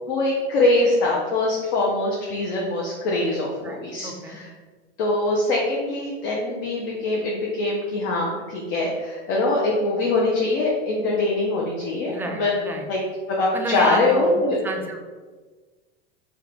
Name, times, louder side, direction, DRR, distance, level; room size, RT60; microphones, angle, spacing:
voice 1, 0.1-4.5 5.0-12.5 12.9-13.0 13.3-14.6, left 2 dB, 60° left, -3 dB, 0.7 m, -23 dB
voice 2, 3.5-4.4 12.1-12.9 13.5-15.0, right 2 dB, 5° right, 1 dB, 0.3 m, -31 dB
2.6 x 2.2 x 4.0 m, 1.4 s
hypercardioid pair, 90°, 32 cm